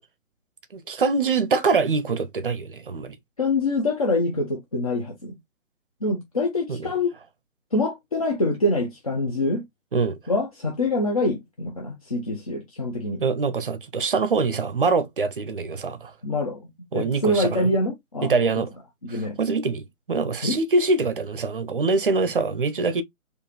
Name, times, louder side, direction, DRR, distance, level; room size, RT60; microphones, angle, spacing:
voice 1, 0.7-3.2 6.7-6.9 9.9-10.2 13.2-16.1 16.9-17.7 18.2-18.7 19.1-23.0, right 4 dB, 40° right, 0.7 m, -24 dB
voice 2, 3.4-5.3 6.0-7.1 7.7-9.6 10.3-13.2 16.2-18.3 19.0-19.4 20.4-20.6, left 2 dB, 25° left, 0.6 m, -25 dB
4.5 x 2.7 x 3.0 m
figure-of-eight pair, 140°, 41 cm